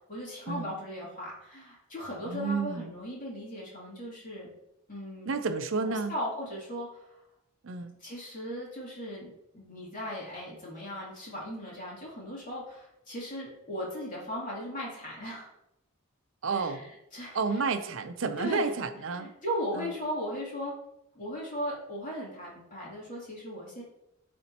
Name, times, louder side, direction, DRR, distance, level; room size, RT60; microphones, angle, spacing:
voice 1, 0.0-4.5 4.9-5.3 5.8-7.2 8.0-15.5 16.5-17.6 18.4-18.7 19.1-20.7 21.1-23.8, equal, 40° left, -5 dB, 2.7 m, -37 dB
voice 2, 2.2-2.9 5.3-6.1 7.6-8.0 16.4-16.9 17.3-19.3 19.7-19.9, right 4 dB, 65° right, 9 dB, 0.5 m, -31 dB
12.5 x 4.3 x 2.9 m, 0.86 s
head